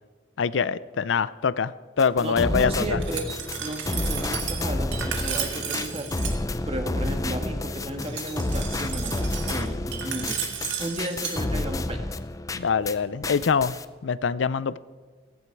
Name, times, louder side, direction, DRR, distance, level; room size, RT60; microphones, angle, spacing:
voice 1, 0.4-3.0 12.5-13.8 14.0-14.8, left 6 dB, 80° left, 0.5 m, -24 dB
sound 1, 2.0-13.0 13.2-13.8, left 2 dB, 20° left, 0.5 m, -30 dB
voice 2, 2.2-3.3 3.6-6.1 6.6-12.1, right 1 dB, 30° right, 1.7 m, -33 dB
Glass, 3.0-6.4 8.0-11.4, right 8 dB, 75° right, 1.9 m, -33 dB
16.0 x 15.5 x 4.7 m
head